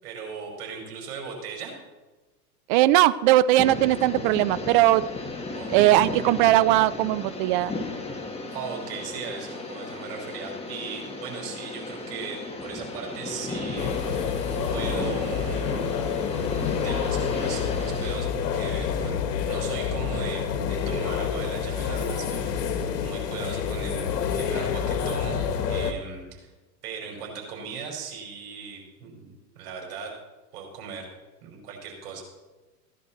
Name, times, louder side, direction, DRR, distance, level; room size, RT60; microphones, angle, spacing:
voice 1, 0.0-1.8 5.4-6.0 8.5-14.4 14.7-16.0 16.8-19.2 19.4-26.5 26.8-30.2 30.5-31.1 31.4-32.2, right 5 dB, 65° right, 0 dB, 5.6 m, -38 dB
voice 2, 2.7-5.0 5.7-7.7, right 15 dB, 35° right, 17 dB, 0.4 m, -19 dB
sound 1, 3.6-18.2, left 2 dB, 10° left, 1.8 m, -35 dB
sound 2, 13.8-25.9, left 7 dB, 75° left, 1.8 m, -28 dB
16.5 x 11.0 x 4.4 m, 1.2 s
hypercardioid pair, 120°, 48 cm